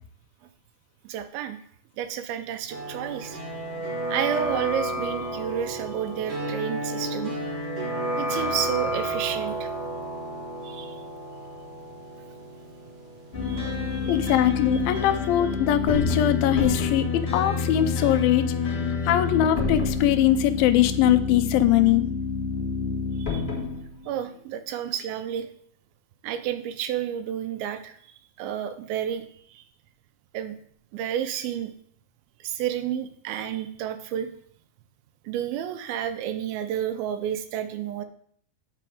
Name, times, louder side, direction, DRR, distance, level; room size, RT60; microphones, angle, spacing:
voice 1, 1.0-1.6 2.0-3.4 4.1-7.3 8.2-9.7 10.6-11.0 13.4-14.4 14.9-15.0 23.2-23.4 24.1-25.5 26.2-28.0 28.4-29.6 30.3-30.6 30.9-31.7 32.4-34.3 35.2-38.0, right 10 dB, 85° right, 9 dB, 2.4 m, -31 dB
sound 1, 2.7-14.4 14.7-14.8, right 1 dB, 50° right, 1.5 m, -32 dB
sound 2, 13.3-24.1, left 4 dB, 45° left, 0.8 m, -28 dB
voice 2, 14.1-22.1, left 12 dB, 80° left, 8 dB, 2.2 m, -22 dB
7.6 x 4.3 x 4.9 m, 0.62 s
omnidirectional pair, 4.3 m